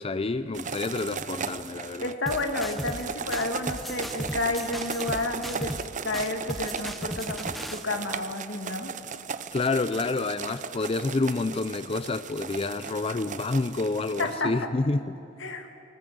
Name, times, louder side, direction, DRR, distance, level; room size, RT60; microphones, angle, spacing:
voice 1, 0.0-2.1 9.5-15.2, left 3 dB, 30° left, 11 dB, 0.5 m, -28 dB
sound 1, 0.5-14.4, right 6 dB, 40° right, 0.6 m, -37 dB
voice 2, 2.0-5.8 6.0-8.9 14.2-14.5 15.4-15.7, left 2 dB, 80° left, 5 dB, 2.1 m, -31 dB
sound 2, 2.3-3.1 3.3-5.9 6.1-7.9, equal, ahead, 0.8 m, -36 dB
21.0 x 19.5 x 7.9 m, 2.8 s
head